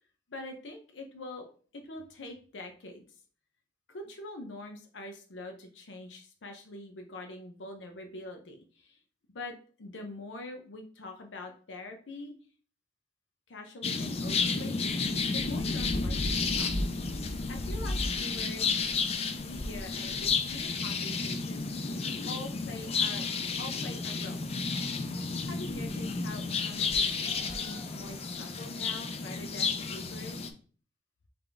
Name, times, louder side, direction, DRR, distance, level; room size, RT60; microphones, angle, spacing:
voice 1, 0.3-1.5 1.7-3.1 3.9-9.0 9.3-12.3 13.5-14.9 15.3-17.0 17.5-18.7 19.4-22.0 22.3-24.5 25.4-30.4, left 2 dB, 90° left, 4 dB, 0.7 m, -44 dB
sound 1, 13.8-30.5, left 4 dB, 35° left, 0.4 m, -31 dB
3.7 x 3.4 x 3.8 m, 0.42 s
head